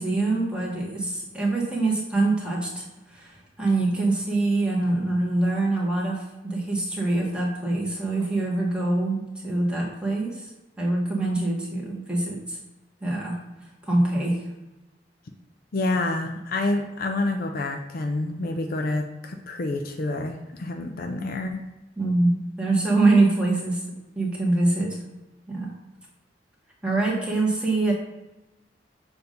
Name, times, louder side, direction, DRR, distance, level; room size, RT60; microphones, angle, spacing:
voice 1, 0.0-2.8 3.1-10.5 10.8-12.6 13.0-13.4 13.8-14.4 22.0-23.8 24.1-25.0 25.5-25.7 26.8-27.9, right 2 dB, 5° right, -5 dB, 1.4 m, -24 dB
voice 2, 15.7-21.6, left 2 dB, 55° left, 4 dB, 0.5 m, -28 dB
6.9 x 2.6 x 5.2 m, 1.0 s
head